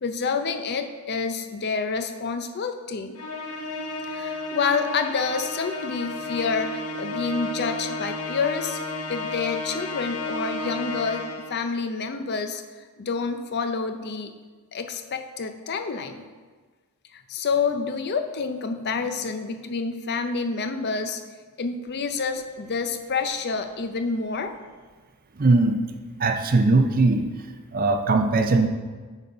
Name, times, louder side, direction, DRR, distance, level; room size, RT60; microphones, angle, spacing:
voice 1, 0.0-3.2 4.1-8.8 9.1-12.6 13.0-14.3 14.7-16.2 17.1-21.2 21.6-24.6, left 5 dB, 45° left, 7 dB, 0.5 m, -28 dB
Musical instrument, 3.2-11.6, left 2 dB, 85° left, 1.0 m, -32 dB
voice 2, 25.4-25.8 26.2-27.3 27.7-28.7, right 3 dB, 40° right, 7 dB, 0.5 m, -20 dB
8.0 x 4.0 x 5.5 m, 1.4 s
head